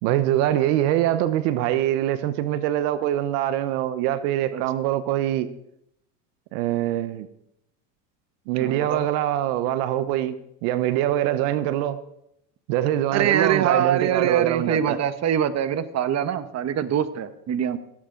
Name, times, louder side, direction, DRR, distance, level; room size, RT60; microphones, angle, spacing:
voice 1, 0.0-5.5 6.5-7.3 8.5-10.3 10.6-12.0 12.7-15.0, right 12 dB, 65° right, 1.1 m, -24 dB
voice 2, 8.5-9.1 13.1-17.8, right 9 dB, 35° right, 1.2 m, -24 dB
17.0 x 13.5 x 3.9 m
supercardioid pair, 110°, 48 cm